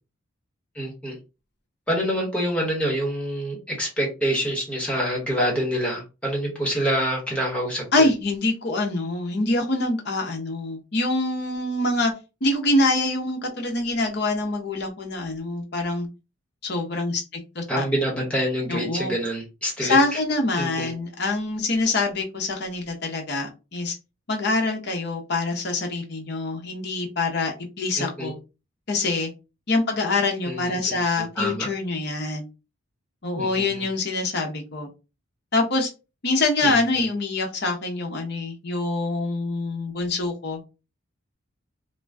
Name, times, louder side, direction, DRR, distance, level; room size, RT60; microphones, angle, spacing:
voice 1, 0.7-1.2 1.9-8.1 17.7-20.0 20.6-20.9 28.0-28.3 30.5-31.0 31.4-31.7 33.3-33.9 36.6-36.8, equal, 5° left, -2 dB, 1.0 m, -26 dB
voice 2, 7.9-12.1 12.4-16.1 16.6-17.8 18.7-19.1 19.8-23.9 24.3-28.4 28.9-29.3 29.7-32.5 33.2-34.9 35.5-35.9 36.2-40.6, left 2 dB, 50° left, 2 dB, 0.7 m, -25 dB
2.5 x 2.2 x 3.3 m, 0.29 s
head